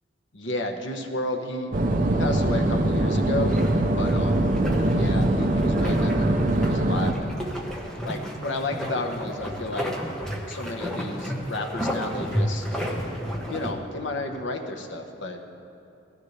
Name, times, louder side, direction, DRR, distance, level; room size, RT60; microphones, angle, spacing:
voice 1, 0.3-1.7 2.2-3.5 3.9-4.5 5.0-7.4 8.0-9.9 10.5-12.7 13.5-15.4, left 2 dB, 70° left, 3 dB, 1.1 m, -32 dB
sound 1, 1.7-7.1, right 1 dB, 40° right, 0.6 m, -22 dB
sound 2, 3.5-13.7, equal, 5° left, 1.2 m, -32 dB
17.5 x 13.5 x 3.3 m, 2.8 s
head